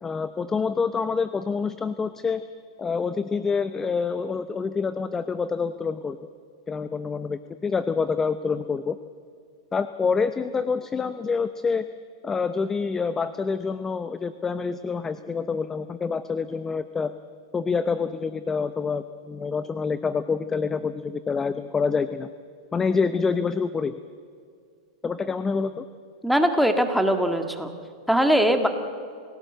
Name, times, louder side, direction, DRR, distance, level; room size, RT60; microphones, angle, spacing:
voice 1, 0.0-2.4 2.8-6.2 6.7-9.0 9.7-11.9 12.2-17.1 17.5-22.3 22.7-23.9 25.0-25.8, left 5 dB, 15° left, 12 dB, 0.6 m, -27 dB
voice 2, 26.2-27.7 28.1-28.7, equal, ahead, 6 dB, 1.7 m, -21 dB
27.5 x 17.0 x 7.8 m, 2.3 s
supercardioid pair, 140°, 3 cm